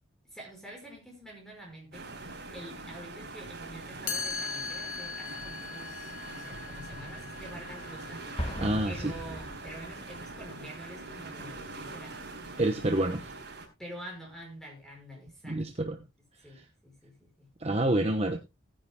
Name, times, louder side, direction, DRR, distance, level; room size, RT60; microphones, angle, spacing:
voice 1, 0.3-2.1 2.5-8.3 8.8-12.2 13.8-15.6 16.4-17.5 17.9-18.2, right 1 dB, ahead, 0 dB, 5.4 m, -47 dB
sound 1, 1.9-13.7, right 3 dB, 55° right, 4.3 m, -43 dB
Chime, 4.1-9.9, left 5 dB, 80° left, 2.1 m, -40 dB
Explosion, 8.4-10.2, equal, 30° left, 1.6 m, -38 dB
voice 2, 8.6-9.1 12.6-13.3 15.4-16.0 17.6-18.4, right 1 dB, 30° right, 5 dB, 1.0 m, -28 dB
18.5 x 10.0 x 2.2 m, 0.23 s
head